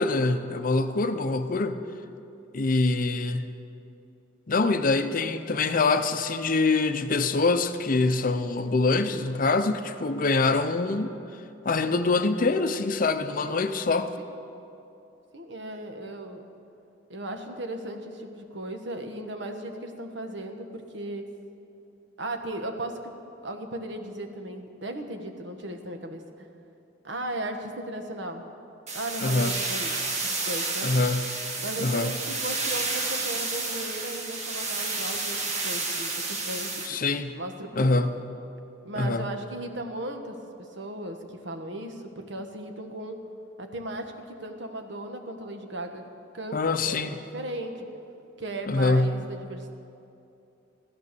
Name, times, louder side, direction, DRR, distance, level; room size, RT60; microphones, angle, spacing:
voice 1, 0.0-1.8 2.5-3.5 4.5-11.1 11.6-14.1 29.2-29.5 30.8-31.4 31.8-32.1 36.8-37.4 37.7-38.2 39.0-39.3 46.5-47.2 48.7-49.2, left 3 dB, 45° left, 9 dB, 0.6 m, -24 dB
voice 2, 15.3-16.4 17.1-21.3 22.2-23.1 23.4-26.5 27.0-28.4 28.9-30.9 31.6-37.0 37.4-37.9 38.8-40.4 40.7-43.2 43.6-46.0 46.3-47.0 47.3-47.7 48.4-49.7, right 1 dB, 70° right, 5 dB, 1.4 m, -36 dB
sound 1, 28.9-36.9, right 3 dB, 35° right, 1.6 m, -30 dB
15.0 x 12.5 x 6.8 m, 2.7 s
head